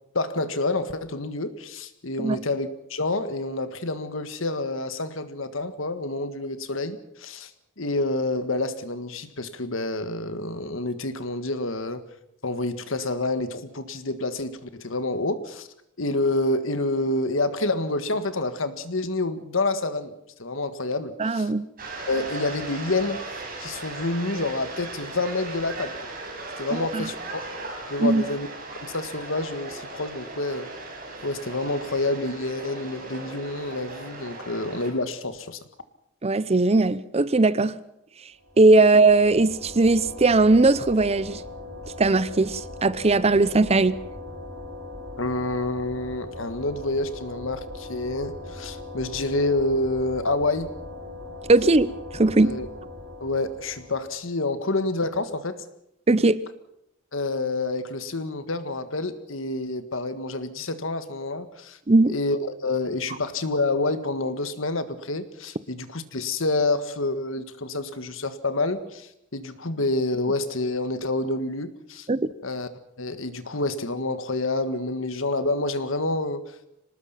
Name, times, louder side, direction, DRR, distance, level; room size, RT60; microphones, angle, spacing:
voice 1, 0.1-7.5 7.8-12.0 12.4-15.7 16.0-21.5 22.1-23.2 23.6-26.1 26.6-27.4 27.9-28.5 28.8-30.7 31.2-35.6 45.2-50.8 52.4-52.7 53.2-55.6 57.1-61.8 62.1-72.1 72.4-72.7 73.0-76.4, left 2 dB, 75° left, 1.7 m, -28 dB
voice 2, 21.2-21.6 26.7-27.1 28.0-28.2 36.2-37.8 38.6-41.4 42.0-44.0 51.5-52.6 56.1-56.4 61.9-62.1 72.1-72.3, right 3 dB, 30° right, 0.7 m, -19 dB
sound 1, 21.8-34.9, right 2 dB, 45° right, 6.0 m, -37 dB
sound 2, 38.4-54.2, left 2 dB, 85° right, 6.3 m, -39 dB
25.0 x 19.5 x 5.9 m
head